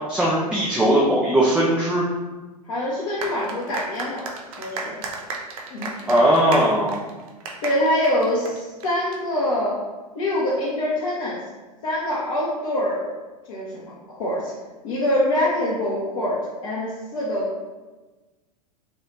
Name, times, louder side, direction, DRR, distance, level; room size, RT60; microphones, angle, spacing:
voice 1, 0.0-2.0 6.1-7.0, right 1 dB, 5° right, -5 dB, 0.3 m, -19 dB
voice 2, 2.7-4.2 4.6-4.9 5.7-6.2 7.6-9.8 10.1-11.4 11.8-13.1 13.5-14.5 14.8-17.6, left 1 dB, 55° left, -6 dB, 0.7 m, -25 dB
sound 1, 3.2-9.2, right 3 dB, 60° right, 0.5 m, -34 dB
3.0 x 2.3 x 3.1 m, 1.2 s
figure-of-eight pair, 95°, 21 cm